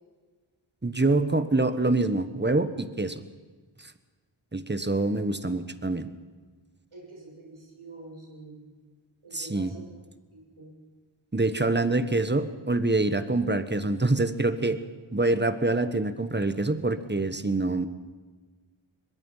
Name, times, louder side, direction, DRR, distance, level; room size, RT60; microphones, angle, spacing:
voice 1, 0.8-3.2 4.5-6.1 9.3-9.7 11.3-14.8 15.1-17.9, right 2 dB, 20° right, 11 dB, 1.3 m, -25 dB
voice 2, 6.9-8.6 9.2-9.8 10.3-10.7 16.4-16.5, right 2 dB, 90° right, -2 dB, 6.7 m, -46 dB
22.0 x 22.0 x 5.7 m, 1.4 s
wide cardioid pair, 45°, 48 cm